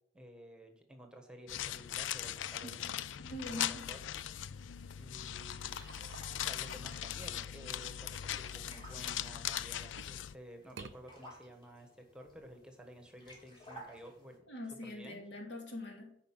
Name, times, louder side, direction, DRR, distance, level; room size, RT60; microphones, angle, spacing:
voice 1, 0.1-3.0 3.3-4.0 5.0-5.7 6.3-14.4 14.8-15.2, equal, 5° right, 4 dB, 1.3 m, -53 dB
sound 1, 1.5-10.4, left 10 dB, 85° left, 0.4 m, -40 dB
voice 2, 3.2-3.9 14.5-16.1, left 1 dB, 65° left, 1 dB, 2.8 m, -43 dB
sound 2, 3.8-14.4, equal, 25° left, 3.4 m, -58 dB
sound 3, 5.6-9.4 9.9-10.3 10.6-11.0, right 5 dB, 80° right, 0.6 m, -55 dB
10.5 x 5.1 x 7.5 m, 0.73 s
head